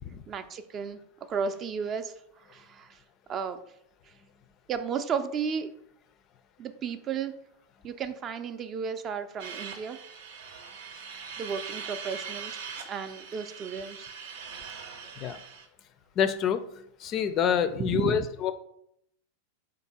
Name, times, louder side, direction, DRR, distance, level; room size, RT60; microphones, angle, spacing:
voice 1, 0.3-1.0 1.3-2.1 2.5-3.0 3.3-3.6 4.7-5.7 6.6-7.3 7.8-10.0 11.4-12.6 12.9-14.1 15.0-15.1 17.8-18.3, right 6 dB, 35° right, 9 dB, 0.4 m, -33 dB
sound 1, 9.4-15.7, right 6 dB, 75° right, 0.7 m, -41 dB
voice 2, 16.2-16.6 17.0-18.5, left 8 dB, 40° left, 12 dB, 0.4 m, -26 dB
3.9 x 2.5 x 4.1 m, 0.73 s
hypercardioid pair, 100°, 0 cm